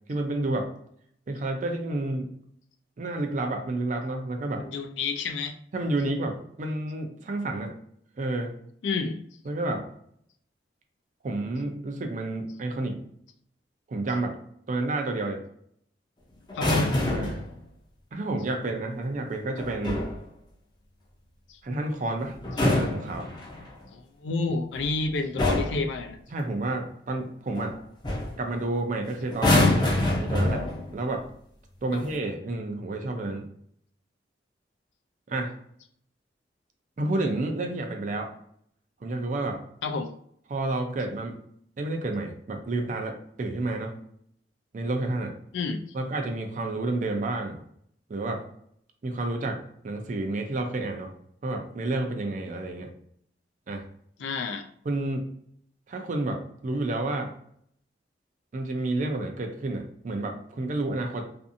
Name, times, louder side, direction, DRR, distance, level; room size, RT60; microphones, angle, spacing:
voice 1, 0.1-0.7 1.3-2.3 3.0-4.6 5.7-7.7 8.2-8.5 9.5-9.8 11.2-13.0 13.9-14.4 14.7-15.4 17.1-17.4 18.1-20.0 21.6-23.3 26.3-27.7 28.4-30.6 30.9-31.2 31.8-33.5 35.3-35.5 37.0-38.3 39.0-39.6 40.5-41.4 41.8-44.0 44.7-45.3 45.9-47.6 48.1-48.4 49.0-51.1 51.4-52.9 53.7-53.8 54.9-55.3 55.9-57.3 58.5-61.2, right 2 dB, 45° right, 4 dB, 0.4 m, -30 dB
voice 2, 4.6-5.5 8.8-9.2 16.5-17.0 21.5-21.6 23.9-26.2 39.8-40.1 45.5-45.8 54.2-54.7, left 3 dB, 80° left, 6 dB, 0.4 m, -30 dB
sound 1, 16.5-17.5 19.6-20.2 22.3-23.7 24.7-25.0 25.4-25.9 27.6-27.7 28.0-28.4 29.3-31.0 31.9-32.2, left 2 dB, 25° left, 0.5 m, -25 dB
2.6 x 2.4 x 2.5 m, 0.66 s
head